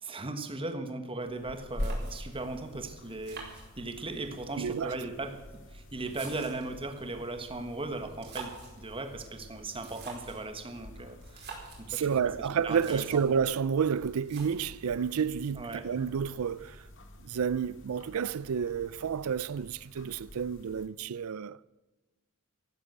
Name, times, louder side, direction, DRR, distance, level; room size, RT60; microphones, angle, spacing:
voice 1, 0.0-12.1 12.4-13.2 15.5-15.9, right 2 dB, 25° right, 1.3 m, -38 dB
sound 1, 1.2-20.9, left 1 dB, 60° left, 1.9 m, -46 dB
sound 2, 1.8-2.5 3.2-4.2 5.1-6.8 8.0-8.8 9.7-10.5 11.2-11.8 12.4-12.5 12.6-13.3 14.2-14.8, right 5 dB, 50° right, 4.6 m, -46 dB
voice 2, 4.6-5.0 11.9-16.8 17.2-21.6, right 7 dB, 75° right, 0.4 m, -30 dB
14.0 x 11.5 x 8.0 m
head